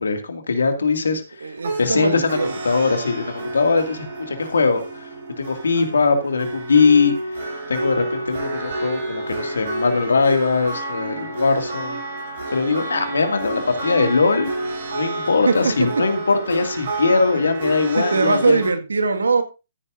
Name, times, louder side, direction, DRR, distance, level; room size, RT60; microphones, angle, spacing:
voice 1, 0.0-1.5 1.8-2.4 2.6-4.8 5.4-12.0 12.5-14.5 14.9-18.6, left 4 dB, 70° left, 6 dB, 2.3 m, -21 dB
voice 2, 1.4-2.5 15.5-15.6 17.4-17.5 18.0-19.4, right 4 dB, 70° right, 8 dB, 1.9 m, -21 dB
sound 1, 1.6-18.7, right 2 dB, 50° right, 6.4 m, -29 dB
14.0 x 9.7 x 2.6 m, 0.28 s
figure-of-eight pair, 125°, 0 cm